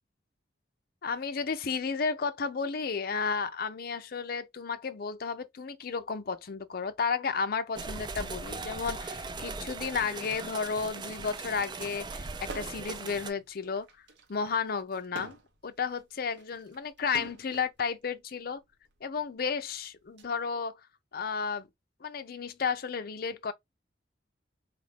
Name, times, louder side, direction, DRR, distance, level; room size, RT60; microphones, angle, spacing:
voice 1, 1.0-13.9 14.3-18.6 19.0-20.8 21.1-21.7 22.0-23.5, left 5 dB, 55° left, 0.5 m, -33 dB
sound 1, 7.8-13.3, right 3 dB, 25° right, 0.4 m, -39 dB
sound 2, 12.5-13.0 13.3-17.7 18.6-20.2, right 3 dB, 70° right, 0.9 m, -46 dB
4.1 x 2.5 x 3.3 m
head